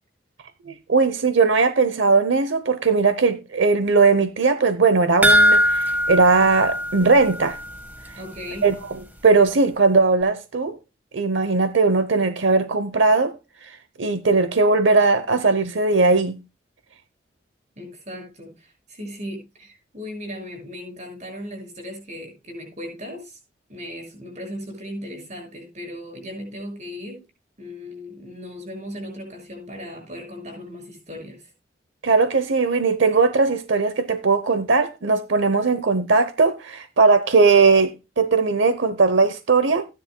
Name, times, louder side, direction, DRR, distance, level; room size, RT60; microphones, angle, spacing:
voice 1, 0.7-7.6 8.6-10.8 11.1-13.3 13.6-16.4 32.0-39.9, right 4 dB, 85° right, 0.8 m, -19 dB
sound 1, 5.2-7.8 8.1-8.2 8.6-8.7, equal, 10° right, 1.4 m, -20 dB
voice 2, 8.2-8.7 17.8-23.4 23.7-27.2 27.6-31.5, equal, 40° right, 6.5 m, -37 dB
15.5 x 10.5 x 2.2 m
head